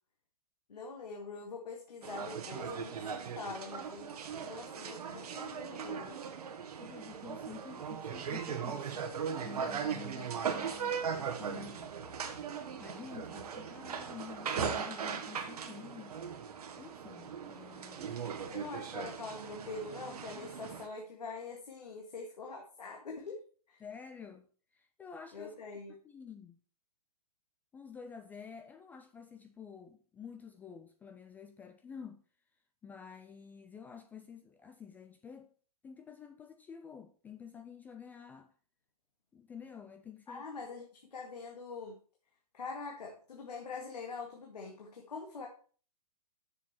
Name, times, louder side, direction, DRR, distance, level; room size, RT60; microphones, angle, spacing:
voice 1, 0.7-6.2 18.5-23.4 23.7-23.8 25.3-25.9 40.3-40.8 41.1-42.0 42.5-45.5, left 4 dB, 85° left, 1.9 m, -44 dB
sound 1, 2.0-20.9, right 7 dB, 75° right, 1.3 m, -39 dB
voice 2, 6.8-9.1 9.4-11.9 12.8-16.2 16.8-18.2 23.8-24.5 24.7-25.6 25.9-26.6 27.7-32.2 32.8-35.5 35.8-38.5 39.3-40.4, left 7 dB, 10° left, 0.3 m, -50 dB
7.2 x 6.7 x 4.3 m
hypercardioid pair, 135°, 20 cm